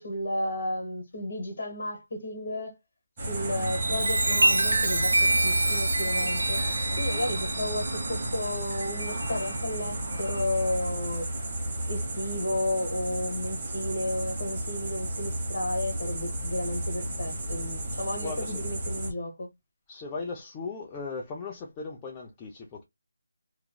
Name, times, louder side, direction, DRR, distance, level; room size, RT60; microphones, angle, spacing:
voice 1, 0.0-2.8 3.3-6.6 7.0-11.3 11.9-19.5, left 1 dB, 45° left, 1.3 m, -33 dB
sound 1, 3.2-19.1, right 1 dB, 15° right, 1.0 m, -32 dB
Chime, 3.6-9.5 10.1-10.4, right 2 dB, 80° right, 0.9 m, -27 dB
voice 2, 18.2-18.7 19.9-22.8, left 4 dB, 10° left, 0.4 m, -37 dB
3.0 x 2.4 x 2.2 m
figure-of-eight pair, 170°, 0 cm